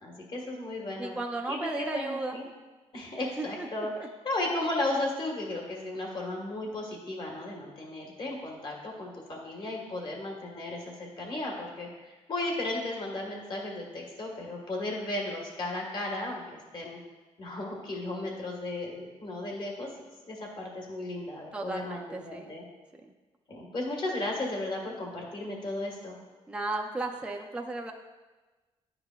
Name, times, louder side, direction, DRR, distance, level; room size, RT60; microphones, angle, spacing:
voice 1, 0.0-1.1 1.5-2.4 2.9-3.9 4.2-17.0 17.4-19.9 20.3-22.6 23.5-26.2, left 2 dB, 45° left, -1 dB, 1.4 m, -35 dB
voice 2, 1.0-2.4 3.4-4.1 21.5-22.6 23.0-23.1 26.5-27.9, right 2 dB, 10° right, 2 dB, 0.4 m, -35 dB
10.0 x 4.8 x 2.2 m, 1.2 s
cardioid pair, 155°, 12 cm